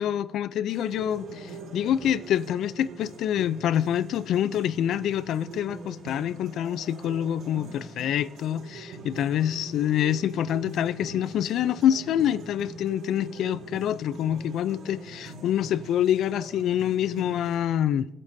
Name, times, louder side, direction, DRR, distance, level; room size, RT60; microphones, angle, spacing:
voice 1, 0.0-18.1, left 10 dB, 80° left, 0.5 m, -26 dB
sound 1, 0.7-17.6, right 2 dB, 80° right, 2.1 m, -43 dB
24.0 x 9.9 x 2.7 m
cardioid pair, 90°, 0 cm